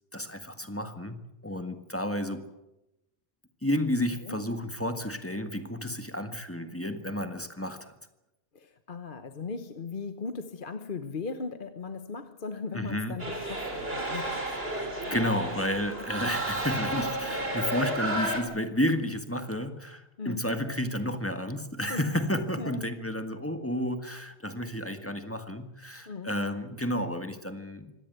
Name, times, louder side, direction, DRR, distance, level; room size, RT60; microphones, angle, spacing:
voice 1, 0.1-2.5 3.6-7.9 12.7-13.2 14.1-14.4 15.1-27.9, left 1 dB, 10° left, 1.7 m, -31 dB
voice 2, 8.5-14.6 20.2-20.5 21.9-22.0 22.6-22.8 26.1-26.3, left 4 dB, 55° left, 1.2 m, -38 dB
sound 1, 13.2-18.4, right 1 dB, 65° right, 4.3 m, -32 dB
25.0 x 18.0 x 8.0 m
omnidirectional pair, 1.1 m